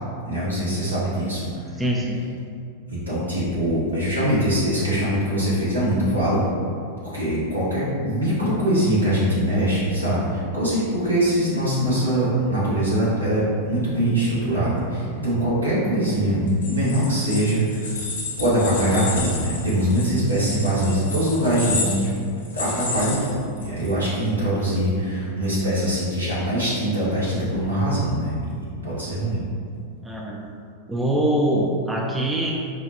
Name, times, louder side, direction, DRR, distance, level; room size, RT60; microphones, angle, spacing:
voice 1, 0.2-1.5 3.1-6.4 7.0-18.0 18.4-22.1 22.5-29.4, right 1 dB, 80° right, -10 dB, 1.3 m, -22 dB
voice 2, 1.8-2.2 30.0-30.4 30.9-32.5, right 1 dB, 10° right, -2 dB, 0.4 m, -23 dB
sound 1, 16.5-23.9, left 3 dB, 65° left, 0.9 m, -31 dB
5.0 x 2.3 x 2.6 m, 2.3 s
figure-of-eight pair, 90°, 0 cm